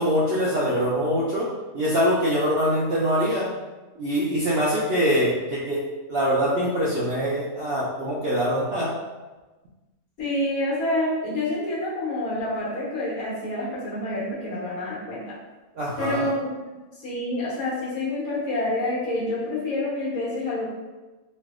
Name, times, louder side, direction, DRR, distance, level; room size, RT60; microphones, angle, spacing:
voice 1, 0.0-1.5 1.7-3.5 4.0-8.9 15.8-16.3, equal, 65° right, -7 dB, 0.6 m, -24 dB
voice 2, 10.2-15.3 16.0-16.6 16.9-20.7, left 1 dB, 75° left, -6 dB, 1.4 m, -27 dB
3.1 x 2.6 x 2.3 m, 1.2 s
omnidirectional pair, 1.6 m